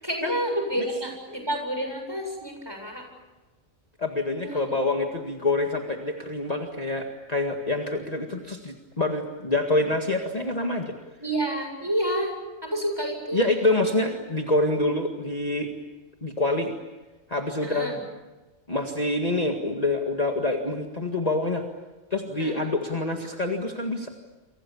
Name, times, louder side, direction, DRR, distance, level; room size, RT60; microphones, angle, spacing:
voice 1, 0.0-3.1 4.4-4.6 11.2-12.3 12.6-13.5 17.6-18.0 22.4-22.6, right 1 dB, 15° right, 3 dB, 7.5 m, -29 dB
voice 2, 4.0-11.0 13.3-15.7 16.2-16.7 17.3-18.0 18.7-21.7 22.1-24.1, left 2 dB, 30° left, 2 dB, 2.1 m, -26 dB
29.5 x 24.5 x 7.2 m, 1.2 s
omnidirectional pair, 1.4 m